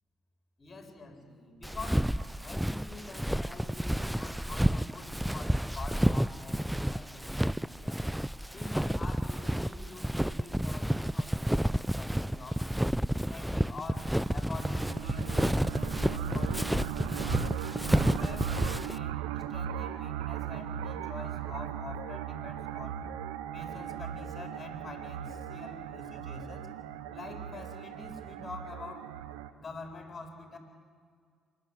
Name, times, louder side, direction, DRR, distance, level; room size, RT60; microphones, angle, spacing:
voice 1, 0.6-2.2 2.4-8.0 8.5-12.7 13.1-17.4 17.8-23.1 23.5-26.7 27.1-29.2 29.4-30.6, left 3 dB, 40° left, 4 dB, 4.4 m, -46 dB
Walk footsteps, 1.6-19.0, equal, 5° right, 0.5 m, -30 dB
sound 1, 13.9-29.5, right 9 dB, 85° right, 0.8 m, -38 dB
26.5 x 11.5 x 10.0 m, 2.1 s
hypercardioid pair, 55°, 0 cm